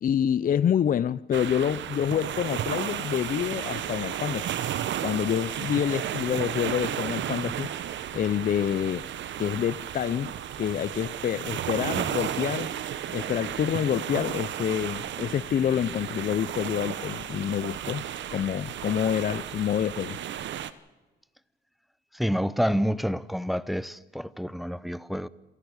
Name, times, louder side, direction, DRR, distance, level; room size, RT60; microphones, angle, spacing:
voice 1, 0.0-4.5 5.0-7.7 8.1-9.1 9.4-10.3 10.6-12.7 13.1-18.0 18.3-20.2, left 9 dB, 45° left, 0.5 m, -27 dB
sound 1, 1.3-20.7, right 10 dB, 70° right, 1.0 m, -33 dB
voice 2, 22.1-25.3, equal, ahead, 0.7 m, -28 dB
28.0 x 11.5 x 8.1 m
cardioid pair, 90°, 20 cm